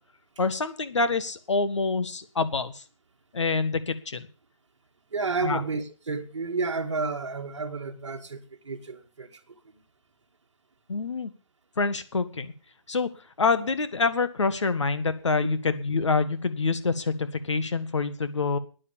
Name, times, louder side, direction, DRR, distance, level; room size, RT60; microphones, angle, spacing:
voice 1, 0.4-2.8 3.3-4.3 5.4-5.6 10.9-11.3 11.8-12.5 12.9-13.1 13.4-18.6, left 4 dB, 65° left, 1.7 m, -26 dB
voice 2, 5.1-9.7, right 4 dB, 65° right, 2.1 m, -31 dB
10.5 x 9.9 x 7.1 m
hypercardioid pair, 170°, 16 cm